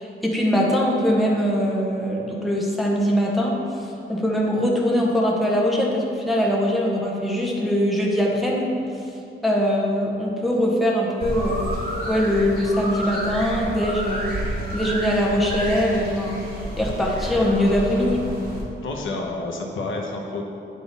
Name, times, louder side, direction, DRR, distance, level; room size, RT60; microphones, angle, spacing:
voice 1, 0.0-3.6 4.1-8.7 9.4-11.7 12.1-14.4 14.7-16.4 16.8-18.4, equal, ahead, -4 dB, 1.0 m, -22 dB
sound 1, 11.2-18.6, equal, 50° right, 1.5 m, -30 dB
voice 2, 18.8-20.4, left 2 dB, 85° left, 0 dB, 0.9 m, -29 dB
9.5 x 3.8 x 4.1 m, 2.8 s
wide cardioid pair, 140°, 20 cm